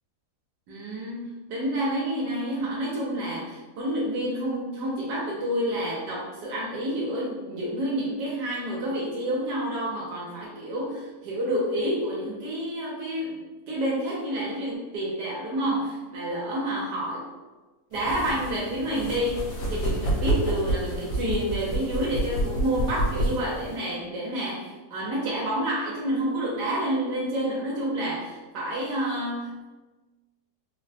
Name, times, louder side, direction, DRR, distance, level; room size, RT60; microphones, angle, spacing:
voice 1, 0.7-13.4 13.7-17.3 17.9-29.7, right 1 dB, 80° right, -5 dB, 1.2 m, -29 dB
sound 1, 17.9-23.8, right 1 dB, 90° left, 1.3 m, -29 dB
3.8 x 2.1 x 2.6 m, 1.2 s
omnidirectional pair, 1.8 m